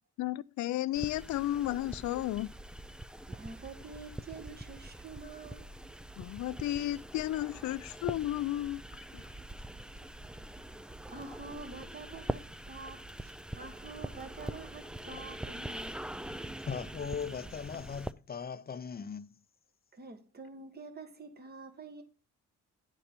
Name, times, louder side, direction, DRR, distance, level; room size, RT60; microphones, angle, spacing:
voice 1, 0.2-2.5 6.2-8.8 9.1-9.2, left 14 dB, 70° left, 0.5 m, -33 dB
sound 1, 0.9-18.1, right 1 dB, 5° right, 0.3 m, -43 dB
voice 2, 3.3-5.7 9.7-10.1 10.4-10.5 10.7-16.0 19.9-22.0, right 3 dB, 35° right, 1.6 m, -47 dB
voice 3, 16.7-19.3, left 6 dB, 30° left, 0.7 m, -39 dB
9.9 x 4.3 x 5.2 m
cardioid pair, 90°, 30 cm